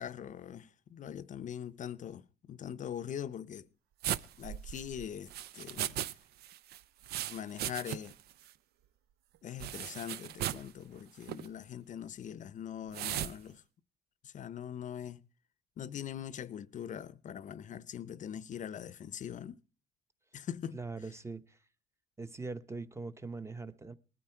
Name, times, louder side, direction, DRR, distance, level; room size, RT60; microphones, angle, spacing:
voice 1, 0.0-3.7 4.4-6.1 7.3-8.2 9.4-13.6 14.2-15.2 15.8-19.6 20.3-20.8, left 9 dB, 45° left, 0.7 m, -42 dB
sound 1, 4.0-6.1 6.4-8.2 8.5-8.6 9.6-10.7 11.2-11.5 12.9-13.3, right 12 dB, 70° right, 0.7 m, -37 dB
voice 2, 20.7-21.6 22.2-23.9, right 3 dB, 15° right, 0.9 m, -42 dB
20.0 x 12.5 x 4.5 m
cardioid pair, 110°, 17 cm